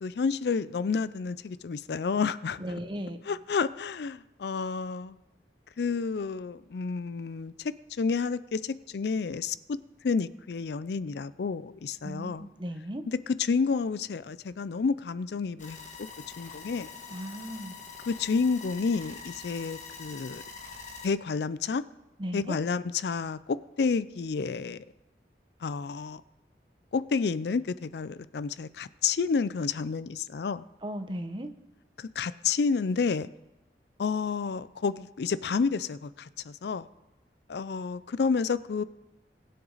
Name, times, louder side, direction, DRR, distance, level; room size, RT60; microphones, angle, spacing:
voice 1, 0.0-2.6 3.3-5.2 5.8-9.8 10.0-12.5 13.1-15.8 16.4-16.9 18.1-20.4 21.0-21.8 22.3-24.8 25.6-26.2 26.9-30.6 32.0-33.3 34.0-36.9 37.5-38.8, left 5 dB, 70° left, 0.4 m, -30 dB
voice 2, 2.6-3.2 12.0-13.0 17.1-17.8 22.2-22.6 30.8-31.5, equal, 25° right, 0.8 m, -36 dB
sound 1, 15.6-21.1, left 5 dB, 40° left, 1.5 m, -44 dB
21.5 x 7.8 x 4.0 m
head